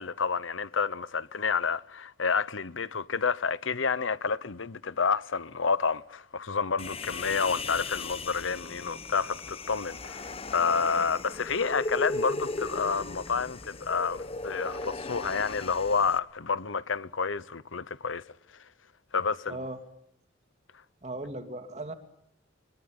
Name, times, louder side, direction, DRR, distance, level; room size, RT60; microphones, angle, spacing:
voice 1, 0.0-18.2 19.1-19.6, left 5 dB, 85° left, 0.9 m, -29 dB
Human voice, 6.8-16.2, left 2 dB, 30° left, 1.1 m, -37 dB
voice 2, 19.5-19.8 21.0-21.9, right 1 dB, 35° right, 2.8 m, -37 dB
23.0 x 22.5 x 8.9 m
head